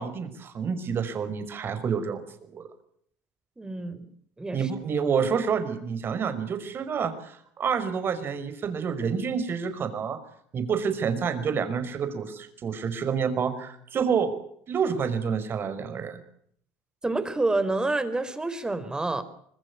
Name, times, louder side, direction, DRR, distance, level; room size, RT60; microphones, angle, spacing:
voice 1, 0.0-2.2 2.5-2.7 4.5-10.2 10.5-14.3 14.7-16.2, right 6 dB, 40° right, 11 dB, 5.4 m, -28 dB
voice 2, 3.6-4.1 4.4-4.7 17.0-19.2, right 2 dB, 15° right, 13 dB, 4.4 m, -28 dB
26.0 x 21.0 x 7.0 m, 0.67 s
supercardioid pair, 95°, 6 cm